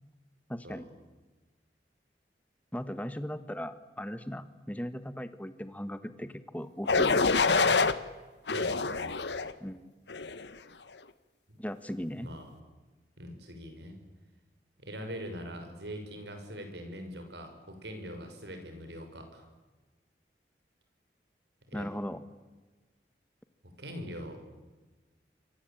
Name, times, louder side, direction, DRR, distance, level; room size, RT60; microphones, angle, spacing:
voice 1, 0.5-0.9 2.7-7.3 9.6-9.9 11.6-12.3 21.7-22.2, equal, 10° left, 12 dB, 1.4 m, -38 dB
sound 1, 6.9-7.9 8.5-9.5 10.1-10.5, left 4 dB, 85° left, 1.4 m, -26 dB
voice 2, 8.5-9.1 11.5-11.6 12.2-12.5 13.2-13.9 14.8-19.5 21.7-21.9 23.8-24.4, equal, 85° right, 6 dB, 6.3 m, -42 dB
27.5 x 23.5 x 8.9 m, 1.3 s
head